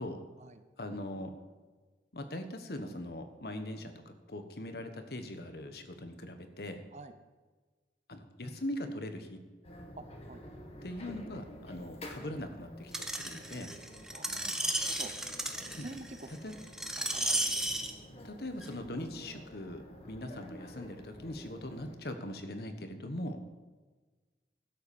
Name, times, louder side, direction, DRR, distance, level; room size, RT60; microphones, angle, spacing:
voice 1, 0.8-1.3 2.1-6.8 8.1-9.4 10.8-13.7 15.8-15.9 16.4-16.5 18.2-23.4, left 1 dB, 60° left, 7 dB, 1.3 m, -41 dB
sound 1, 9.6-22.0, equal, 35° left, 1.6 m, -50 dB
voice 2, 10.0-10.4 14.1-15.1 15.8-16.3 17.0-17.4, right 2 dB, 40° right, 10 dB, 0.8 m, -48 dB
Screech, 12.9-17.9 18.6-18.7, right 1 dB, 5° right, 0.8 m, -34 dB
12.5 x 8.0 x 7.1 m, 1.3 s
head